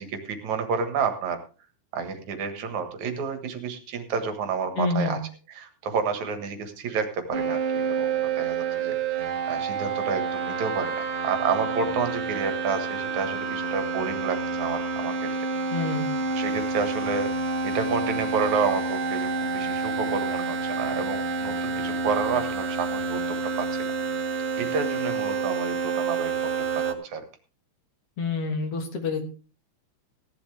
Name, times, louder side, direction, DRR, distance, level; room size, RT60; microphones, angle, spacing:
voice 1, 0.0-1.4 1.9-5.2 5.5-7.6 7.9-15.3 16.3-17.3 17.6-24.2 24.6-27.2, right 5 dB, 75° right, 7 dB, 2.9 m, -30 dB
voice 2, 4.8-5.2 15.7-16.1 28.2-29.2, left 3 dB, 55° left, 5 dB, 2.5 m, -27 dB
sound 1, 7.3-26.9, right 4 dB, 45° right, 0.9 m, -28 dB
16.5 x 11.5 x 3.4 m, 0.35 s
omnidirectional pair, 3.4 m